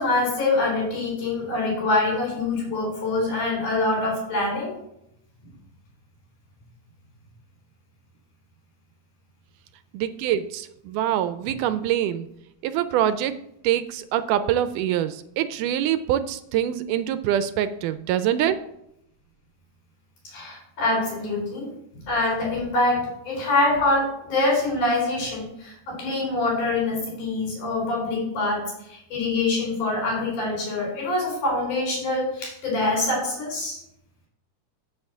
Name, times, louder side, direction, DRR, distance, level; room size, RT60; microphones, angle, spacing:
voice 1, 0.0-4.7 20.3-21.7 22.1-28.6 28.9-33.8, left 2 dB, 70° left, -2 dB, 5.5 m, -25 dB
voice 2, 9.9-12.3 12.6-13.3 13.6-18.6, right 11 dB, 80° right, 12 dB, 2.0 m, -24 dB
8.9 x 4.8 x 7.1 m, 0.79 s
omnidirectional pair, 3.8 m